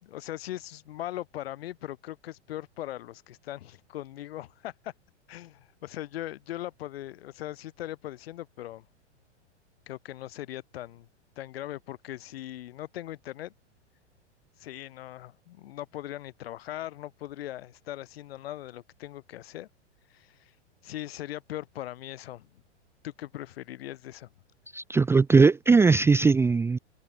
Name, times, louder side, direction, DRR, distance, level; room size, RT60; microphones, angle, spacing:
voice 1, 0.0-4.9 5.3-8.9 9.9-11.1 11.4-13.5 14.6-19.7 20.1-20.5 20.8-22.5 23.0-24.3, left 14 dB, 55° left, 4.3 m, -39 dB
voice 2, 24.7-26.8, right 4 dB, 5° right, 0.7 m, -20 dB
figure-of-eight pair, 105°, 35 cm